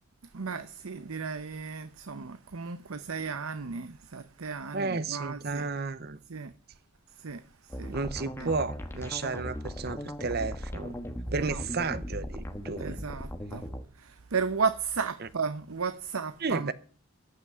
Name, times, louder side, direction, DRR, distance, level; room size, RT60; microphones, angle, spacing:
voice 1, 0.3-5.7 6.3-6.5 7.2-7.4 7.8-8.0 8.4-8.5 11.3-11.6 12.8-13.6 14.0-16.7, right 5 dB, 75° right, 0.8 m, -34 dB
voice 2, 4.7-6.2 7.9-10.9 11.3-13.0 15.2-15.3 16.4-16.7, right 4 dB, 45° right, 0.7 m, -32 dB
sound 1, 7.7-13.8, equal, 10° left, 1.1 m, -38 dB
13.5 x 5.9 x 9.3 m
head